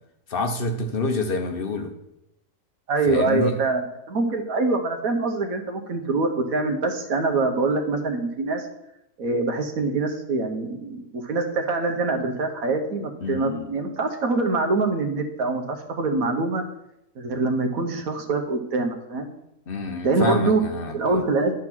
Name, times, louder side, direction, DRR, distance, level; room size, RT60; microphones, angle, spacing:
voice 1, 0.3-1.9 3.1-3.6 13.2-13.7 19.7-21.2, left 3 dB, 40° left, 5 dB, 0.9 m, -27 dB
voice 2, 2.9-8.7 9.2-16.6 17.2-19.3 20.0-20.6 20.9-21.5, right 3 dB, 60° right, 4 dB, 1.4 m, -24 dB
11.0 x 3.8 x 6.0 m, 0.83 s
omnidirectional pair, 1.7 m